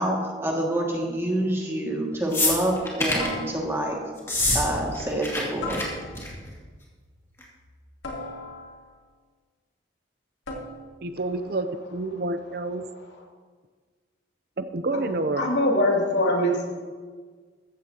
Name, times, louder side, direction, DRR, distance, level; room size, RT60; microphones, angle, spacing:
voice 1, 0.0-4.0 4.5-5.8, right 1 dB, 15° right, -2 dB, 2.2 m, -27 dB
sound 1, 1.4-1.7 3.2-4.0 5.6-6.4 8.0-9.0 10.5-11.0, left 2 dB, 90° left, 2.4 m, -38 dB
sound 2, 2.3-3.3 4.2-4.6 4.9-5.4 5.7-5.8 6.1-6.5 7.4-7.5, left 2 dB, 15° left, 2.5 m, -25 dB
voice 2, 11.0-11.7 11.9-12.8 14.6-15.5, right 2 dB, 55° right, 10 dB, 0.6 m, -28 dB
voice 3, 15.4-16.7, left 1 dB, 75° left, -2 dB, 2.7 m, -22 dB
14.5 x 14.5 x 2.9 m, 1.5 s
head